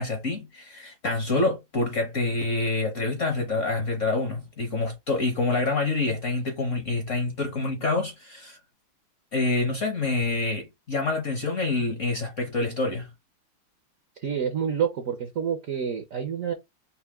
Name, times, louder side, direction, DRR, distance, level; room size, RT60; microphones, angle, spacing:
voice 1, 0.0-8.6 9.3-13.1, left 3 dB, 50° left, 0.9 m, -27 dB
voice 2, 14.2-16.5, right 7 dB, 60° right, 0.8 m, -28 dB
5.6 x 2.2 x 3.5 m
omnidirectional pair, 2.4 m